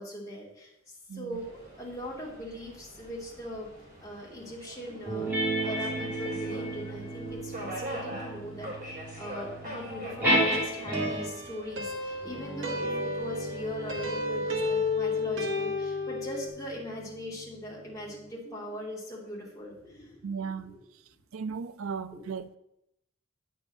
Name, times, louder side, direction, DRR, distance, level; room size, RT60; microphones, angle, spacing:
voice 1, 0.0-3.7 4.0-5.3 5.6-20.8 22.1-22.2, equal, 15° left, 2.8 m, -40 dB
voice 2, 1.1-1.4 8.1-8.2 20.2-20.8 21.3-22.6, right 6 dB, 80° right, 0.5 m, -36 dB
Subway metro underground, 1.3-14.9, equal, 40° right, 3.8 m, -44 dB
sound 1, 5.1-11.5 12.2-17.1, right 1 dB, 10° right, 2.9 m, -33 dB
sound 2, 10.3-16.5, left 3 dB, 65° right, 1.5 m, -32 dB
8.7 x 4.8 x 7.2 m
head